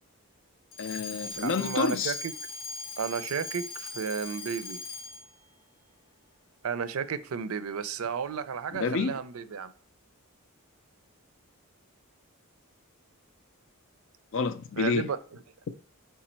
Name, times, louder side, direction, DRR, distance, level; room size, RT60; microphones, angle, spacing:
Alarm, 0.7-5.4, left 3 dB, 85° left, 0.9 m, -40 dB
voice 1, 0.8-2.2 8.7-9.2 14.3-15.1, left 4 dB, 60° left, 0.4 m, -29 dB
voice 2, 1.4-2.3 3.0-4.8 6.6-9.7 14.8-15.2, right 6 dB, 70° right, 0.5 m, -33 dB
5.1 x 4.6 x 4.3 m
head